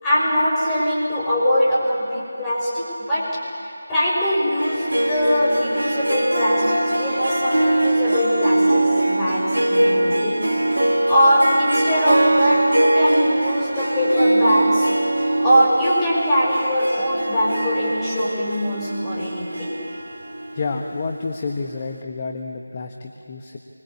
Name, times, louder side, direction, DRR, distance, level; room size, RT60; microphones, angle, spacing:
voice 1, 0.0-10.4 11.1-14.9 15.4-19.8, equal, 10° left, -8 dB, 6.2 m, -22 dB
Harp, 4.6-21.4, right 1 dB, 65° right, 2.5 m, -22 dB
voice 2, 20.5-23.6, left 4 dB, 25° left, 3 dB, 1.3 m, -29 dB
27.5 x 24.5 x 8.6 m, 2.5 s
figure-of-eight pair, 165°, 0 cm